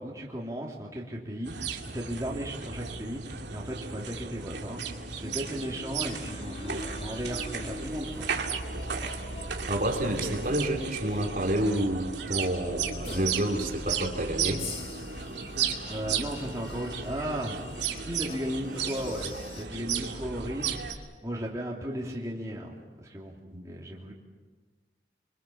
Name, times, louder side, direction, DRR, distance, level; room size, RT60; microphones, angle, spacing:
voice 1, 0.0-4.8 5.2-8.3 15.9-17.6 18.0-23.4 23.6-24.1, equal, 20° right, -2 dB, 2.9 m, -36 dB
sound 1, 1.5-20.9, right 6 dB, 80° right, 2.4 m, -35 dB
sound 2, 5.1-19.6, left 2 dB, 35° left, 2.7 m, -45 dB
voice 2, 9.7-12.9 13.1-14.6 23.5-23.6, right 1 dB, 50° right, 2 dB, 3.0 m, -29 dB
25.0 x 25.0 x 7.2 m, 1.4 s
head